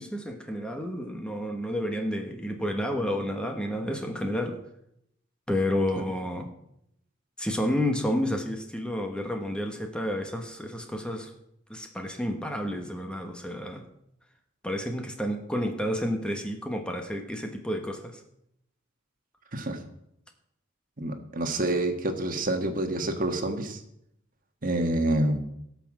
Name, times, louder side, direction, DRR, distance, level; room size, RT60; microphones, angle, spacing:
voice 1, 0.0-4.6 5.5-6.5 7.4-11.3 11.7-13.9 14.6-18.2, left 1 dB, 5° left, 4 dB, 1.1 m, -30 dB
voice 2, 21.0-23.8 24.6-25.4, right 1 dB, 45° right, 6 dB, 1.5 m, -27 dB
17.0 x 5.8 x 7.5 m, 0.77 s
head